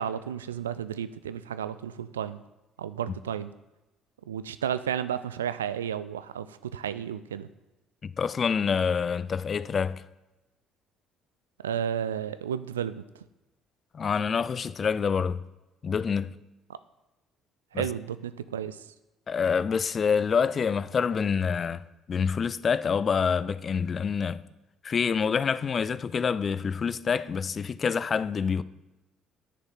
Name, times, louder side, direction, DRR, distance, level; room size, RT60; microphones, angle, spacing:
voice 1, 0.0-2.4 2.8-3.5 4.3-7.5 11.6-13.0 17.7-18.9, right 9 dB, 80° right, 0.3 m, -32 dB
voice 2, 8.0-10.0 13.9-15.4 15.8-16.3 17.7-17.9 19.3-24.4 24.8-28.6, left 6 dB, 40° left, 0.4 m, -27 dB
9.6 x 6.7 x 5.5 m
figure-of-eight pair, 50°, 0 cm